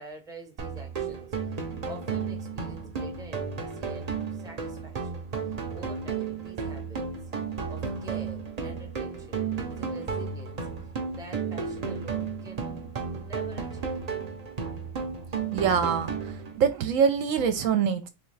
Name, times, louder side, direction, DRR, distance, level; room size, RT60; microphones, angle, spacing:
voice 1, 0.0-7.3 7.7-14.2, right 2 dB, 5° right, 0.7 m, -47 dB
sound 1, 0.6-16.6, right 5 dB, 40° right, 0.6 m, -33 dB
voice 2, 15.5-18.1, right 7 dB, 70° right, 0.9 m, -25 dB
3.6 x 3.5 x 3.2 m
omnidirectional pair, 1.5 m